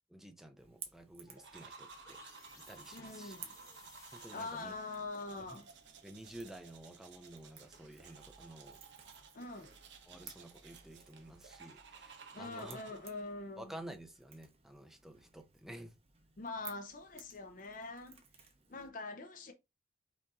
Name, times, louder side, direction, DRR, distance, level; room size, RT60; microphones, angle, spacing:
voice 1, 0.1-2.2 2.6-3.4 4.1-4.7 5.4-5.6 6.0-8.8 10.1-12.8 13.6-15.9, right 1 dB, ahead, 0.6 m, -51 dB
Crackle / Crack, 0.6-18.9, right 7 dB, 30° right, 0.9 m, -58 dB
sound 1, 1.3-5.6, left 2 dB, 15° left, 1.2 m, -61 dB
sound 2, 1.4-13.3, right 5 dB, 70° right, 0.9 m, -56 dB
voice 2, 2.9-3.5 4.3-5.7 9.3-9.7 12.3-13.7 16.4-18.2 18.7-19.5, left 3 dB, 45° left, 0.6 m, -44 dB
5.4 x 2.6 x 3.6 m
head